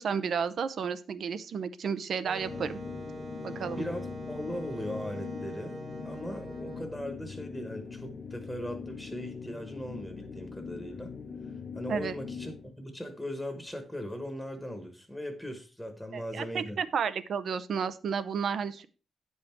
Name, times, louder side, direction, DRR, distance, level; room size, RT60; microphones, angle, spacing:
voice 1, 0.0-2.8 3.4-3.8 11.9-12.2 16.1-18.9, right 6 dB, 60° right, 14 dB, 0.7 m, -32 dB
sound 1, 2.3-12.7, left 5 dB, 45° left, 0.8 m, -42 dB
Wind instrument woodwind instrument, 2.3-6.9, right 1 dB, 45° right, 2.0 m, -43 dB
voice 2, 3.6-5.8 6.0-11.1 11.4-16.8, equal, ahead, 5 dB, 1.1 m, -39 dB
9.7 x 5.6 x 4.4 m, 0.35 s
wide cardioid pair, 135°, 0 cm